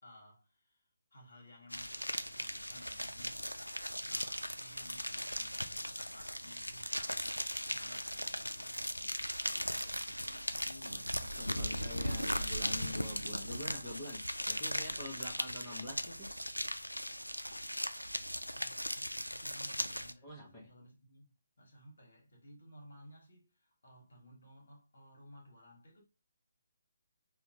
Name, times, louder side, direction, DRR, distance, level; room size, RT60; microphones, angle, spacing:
voice 1, 0.0-3.4 4.1-7.2 7.7-8.9 18.5-21.3 21.6-26.0, equal, 55° left, 1.3 m, -58 dB
sound 1, 1.7-20.1, equal, 85° left, 0.3 m, -38 dB
voice 2, 9.9-16.3 20.2-20.7, left 1 dB, 20° left, 1.1 m, -47 dB
5.0 x 2.3 x 2.7 m
figure-of-eight pair, 145°, 0 cm